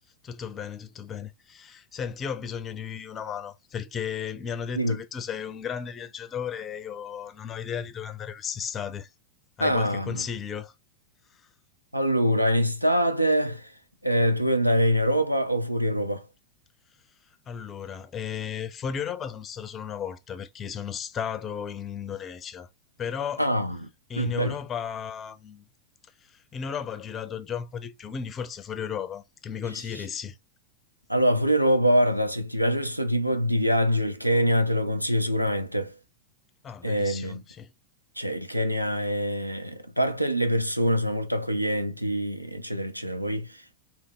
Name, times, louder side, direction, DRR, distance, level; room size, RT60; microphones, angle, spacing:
voice 1, 0.2-9.1 9.6-10.7 11.3-11.4 17.5-22.7 23.0-23.5 24.1-25.7 26.2-30.4 36.6-37.7, left 7 dB, 25° left, 0.5 m, -34 dB
voice 2, 9.6-10.3 11.9-13.7 14.0-16.3 23.4-23.9 24.2-24.6 31.1-36.0 36.8-37.4 38.2-43.8, equal, 90° right, 0.5 m, -24 dB
3.5 x 2.9 x 3.7 m
figure-of-eight pair, 90°, 0 cm